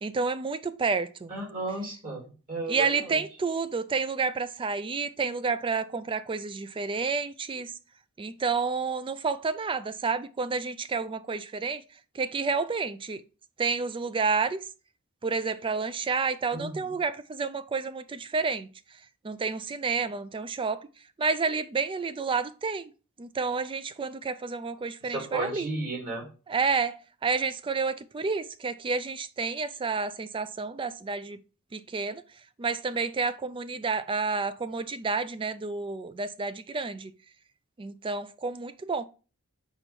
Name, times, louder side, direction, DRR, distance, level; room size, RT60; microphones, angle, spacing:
voice 1, 0.0-1.3 2.7-7.7 8.2-11.8 12.1-13.2 13.6-14.6 15.2-18.7 19.2-20.8 21.2-22.9 23.2-25.7 26.5-31.4 31.7-32.2 32.6-37.1 37.8-39.0, right 4 dB, 25° right, 0.4 m, -30 dB
voice 2, 1.3-3.2 16.5-16.9 25.1-26.3, right 2 dB, 40° right, 2.6 m, -34 dB
4.5 x 4.4 x 5.2 m
head